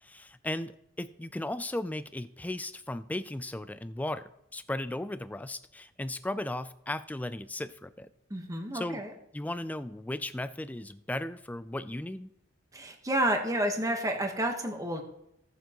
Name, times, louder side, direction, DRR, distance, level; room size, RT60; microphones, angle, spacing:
voice 1, 0.0-8.1 8.7-9.0 9.3-12.3, left 1 dB, 10° left, 13 dB, 0.3 m, -36 dB
voice 2, 8.3-9.1 12.7-15.0, right 1 dB, 15° right, 4 dB, 1.2 m, -30 dB
17.0 x 6.9 x 3.0 m, 0.82 s
head